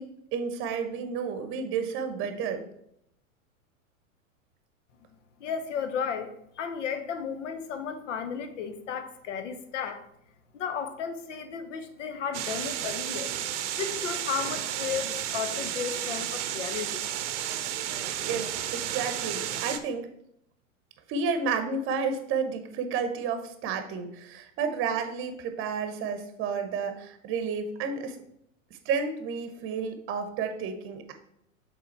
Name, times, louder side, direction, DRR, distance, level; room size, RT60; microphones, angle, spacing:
voice 1, 0.0-2.6 18.3-18.5 18.7-20.1 21.1-28.1 28.8-31.1, right 5 dB, 30° right, 8 dB, 0.9 m, -31 dB
voice 2, 5.4-10.1 10.5-13.3 13.8-17.1, left 7 dB, 60° left, 9 dB, 1.0 m, -34 dB
sound 1, 12.3-19.8, right 11 dB, 60° right, 0.8 m, -32 dB
6.9 x 3.9 x 4.5 m, 0.73 s
figure-of-eight pair, 95°, 41 cm